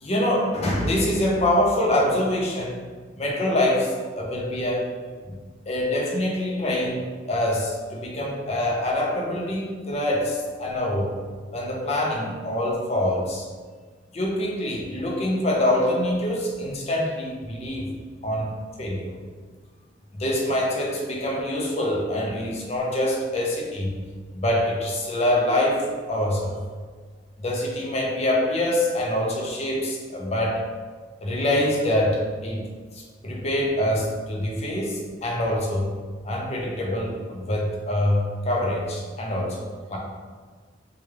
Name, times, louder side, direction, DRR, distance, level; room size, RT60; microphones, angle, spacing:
voice 1, 0.0-2.8 3.2-4.9 5.3-5.4 5.7-11.2 11.5-13.5 14.1-17.9 18.2-18.5 18.8-19.1 20.1-24.0 24.3-26.6 27.4-30.6 31.2-32.7 32.9-35.9 36.2-40.0, left 1 dB, 35° left, -2 dB, 0.5 m, -25 dB
3.1 x 2.3 x 3.2 m, 1.5 s
head